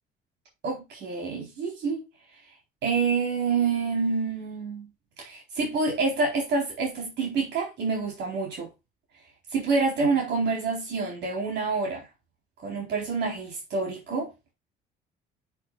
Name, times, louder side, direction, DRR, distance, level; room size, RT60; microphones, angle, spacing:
voice 1, 0.6-2.0 2.8-4.9 5.2-8.7 9.5-12.0 12.6-14.3, right 4 dB, 65° right, 4.1 m, -27 dB
10.5 x 7.0 x 2.5 m
cardioid pair, 100°, 19 cm